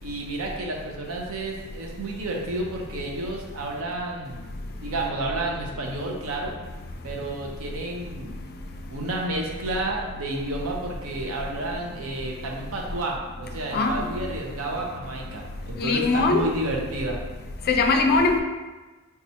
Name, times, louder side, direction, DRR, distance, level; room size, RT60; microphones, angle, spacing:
voice 1, 0.0-4.5 4.8-6.5 7.0-8.4 8.9-17.2, right 2 dB, 75° right, 0 dB, 0.6 m, -31 dB
voice 2, 13.7-14.1 15.8-16.5 17.7-18.4, left 3 dB, 45° left, 4 dB, 0.3 m, -21 dB
4.2 x 2.3 x 2.7 m, 1.2 s
head